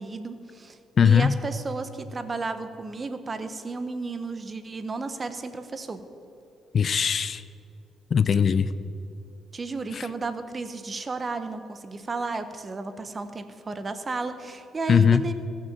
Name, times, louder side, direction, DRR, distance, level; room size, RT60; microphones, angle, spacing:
voice 1, 0.0-0.8 1.0-6.0 9.5-15.3, right 3 dB, 30° right, 10 dB, 0.9 m, -33 dB
voice 2, 1.0-1.3 6.7-7.4 8.1-8.7 9.9-10.1 14.9-15.2, left 7 dB, 50° left, 15 dB, 0.4 m, -20 dB
15.5 x 6.3 x 7.4 m, 2.6 s
cardioid pair, 90°, 0 cm